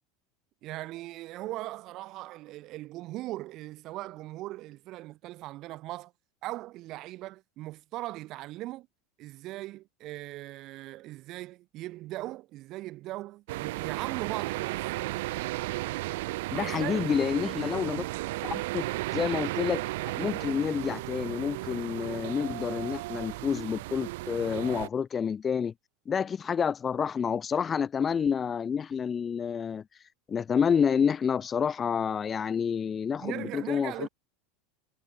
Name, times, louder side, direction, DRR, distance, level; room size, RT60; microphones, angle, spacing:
voice 1, 0.6-6.1 6.4-8.9 9.2-14.9 16.5-17.1 33.2-34.1, right 17 dB, 50° right, 1.9 m, -39 dB
sound 1, 13.5-24.9, right 20 dB, 70° right, 1.1 m, -34 dB
voice 2, 16.5-18.1 18.4-25.7 26.1-29.8 30.3-34.1, left 7 dB, 30° left, 0.7 m, -29 dB
hypercardioid pair, 100°, 0 cm